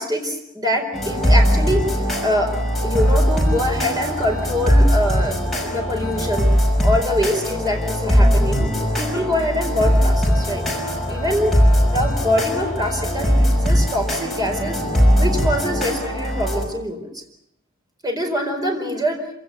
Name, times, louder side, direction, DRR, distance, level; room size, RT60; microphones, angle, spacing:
voice 1, 0.0-1.8 2.2-2.5 2.8-6.5 6.8-10.6 11.1-11.6 11.8-14.8 15.2-17.2 18.0-19.2, equal, 20° right, 3 dB, 4.5 m, -24 dB
sound 1, 0.9-16.6, equal, ahead, 5.8 m, -19 dB
26.5 x 17.5 x 8.3 m, 0.77 s
head